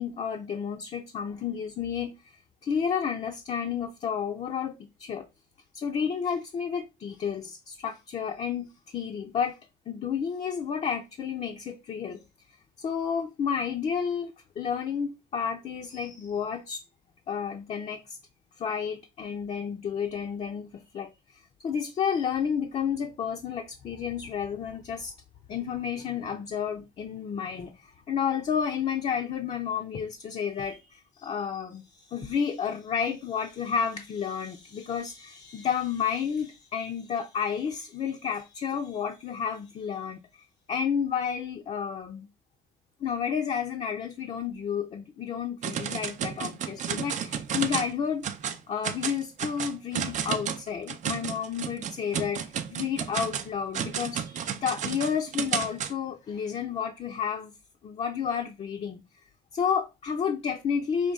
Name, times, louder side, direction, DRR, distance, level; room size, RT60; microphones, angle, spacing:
voice 1, 0.0-2.1 2.6-5.3 5.7-9.6 9.9-12.2 12.8-16.8 17.3-18.2 18.6-21.1 21.6-25.1 25.5-40.2 40.7-42.3 43.0-48.3 48.7-57.5 57.8-59.0 59.5-61.1, left 7 dB, 40° left, 0.5 m, -31 dB
sound 1, 45.6-47.9 48.2-48.6 48.8-55.9, right 8 dB, 45° right, 0.5 m, -32 dB
5.2 x 2.3 x 3.5 m
cardioid pair, 110°, 17 cm